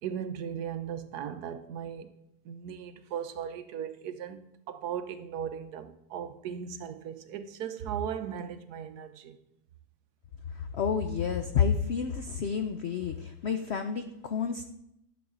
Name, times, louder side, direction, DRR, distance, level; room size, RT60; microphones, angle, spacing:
voice 1, 0.0-2.1 2.4-9.4, right 8 dB, 70° right, 1.2 m, -37 dB
voice 2, 10.6-14.7, left 6 dB, 75° left, 0.6 m, -30 dB
11.5 x 7.1 x 3.7 m
omnidirectional pair, 1.8 m